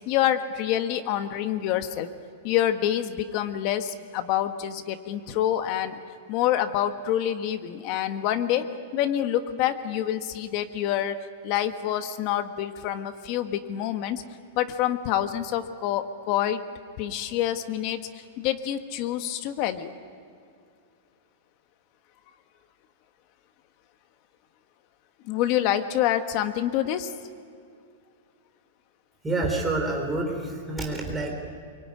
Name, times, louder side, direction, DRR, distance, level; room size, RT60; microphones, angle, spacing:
voice 1, 0.1-2.1 2.4-6.0 6.3-8.7 8.9-11.2 11.4-14.2 14.5-16.6 17.0-19.9 25.2-27.1, left 11 dB, 30° left, 9 dB, 1.4 m, -27 dB
voice 2, 29.2-31.3, right 2 dB, 5° right, 1 dB, 3.7 m, -28 dB
25.0 x 24.0 x 9.6 m, 2.3 s
supercardioid pair, 180°, 0 cm